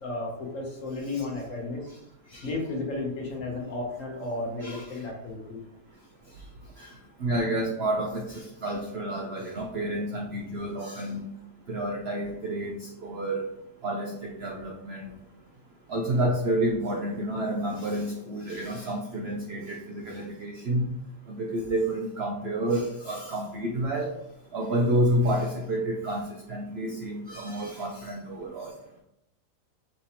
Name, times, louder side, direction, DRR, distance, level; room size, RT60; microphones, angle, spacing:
voice 1, 0.0-1.8 2.4-5.6, left 2 dB, 55° left, 0 dB, 1.2 m, -33 dB
voice 2, 4.6-5.0 6.8-11.2 11.7-13.4 13.8-15.1 15.9-20.9 21.3-24.1 24.5-28.7, right 1 dB, 70° right, 1 dB, 0.6 m, -29 dB
5.8 x 3.0 x 2.8 m, 0.81 s
omnidirectional pair, 1.8 m